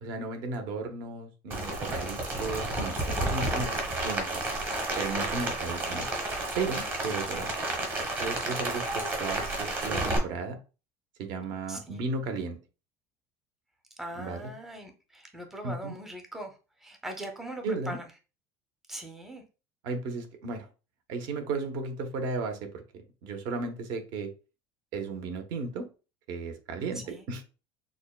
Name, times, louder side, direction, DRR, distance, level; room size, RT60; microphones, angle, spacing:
voice 1, 0.0-4.4 5.0-6.1 6.5-7.5 8.2-10.6 11.2-12.6 14.2-14.5 15.6-16.0 17.6-18.0 19.8-20.7 21.1-24.3 24.9-25.9 26.3-27.4, right 3 dB, 60° right, 6 dB, 0.8 m, -35 dB
Rain, 1.5-10.2, right 2 dB, 25° right, 1.0 m, -31 dB
voice 2, 5.2-6.0 7.3-7.4 11.7-12.1 14.0-18.1 18.9-19.4 26.9-27.2, right 1 dB, 5° right, 3 dB, 0.6 m, -41 dB
6.2 x 2.2 x 2.3 m, 0.32 s
cardioid pair, 155°, 8 cm